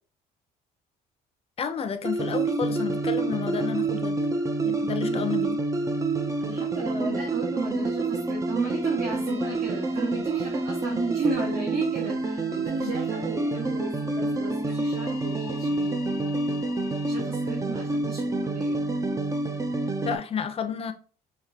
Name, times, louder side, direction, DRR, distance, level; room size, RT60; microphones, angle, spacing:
voice 1, 1.6-4.2 4.6-5.6 12.8-12.9 20.0-20.9, left 7 dB, 35° left, 0.7 m, -31 dB
sound 1, 2.0-20.2, right 2 dB, 20° right, 0.5 m, -28 dB
voice 2, 4.8-5.2 6.4-15.9 17.0-18.8, right 3 dB, 60° right, 1.4 m, -34 dB
sound 2, 8.6-11.5 12.0-17.2, left 1 dB, 40° right, 1.8 m, -47 dB
5.2 x 2.8 x 2.8 m
cardioid pair, 110°, 17 cm